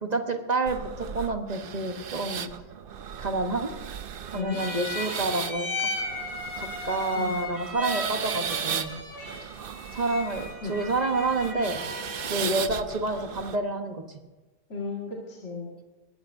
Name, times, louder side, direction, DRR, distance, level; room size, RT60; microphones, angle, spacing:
voice 1, 0.0-2.5 3.2-3.7 4.3-5.9 6.6-8.9 9.4-9.5 9.9-11.8 12.3-14.2, right 2 dB, 30° right, 5 dB, 1.1 m, -29 dB
sound 1, 0.7-13.6, right 8 dB, 75° right, 0.5 m, -36 dB
sound 2, 4.3-12.4, left 2 dB, 70° left, 7.1 m, -36 dB
voice 2, 14.7-15.8, left 4 dB, 45° left, -3 dB, 2.4 m, -34 dB
21.5 x 17.0 x 2.7 m, 1.2 s
omnidirectional pair, 1.7 m